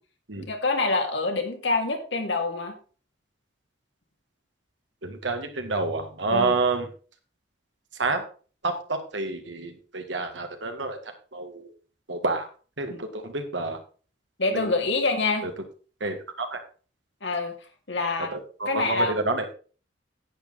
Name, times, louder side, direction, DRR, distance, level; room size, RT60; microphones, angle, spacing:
voice 1, 0.4-2.8 6.3-6.6 12.9-13.0 14.4-15.5 17.2-17.5 17.9-18.3 18.7-19.1, left 3 dB, 75° left, 4 dB, 2.3 m, -26 dB
voice 2, 5.0-6.9 8.0-8.2 8.6-11.0 11.3-11.7 12.1-12.5 12.8-13.8 14.5-14.6 15.4-15.5 16.0-16.6 18.3-19.5, right 3 dB, 85° right, 6 dB, 2.0 m, -28 dB
10.0 x 8.8 x 4.0 m, 0.39 s
head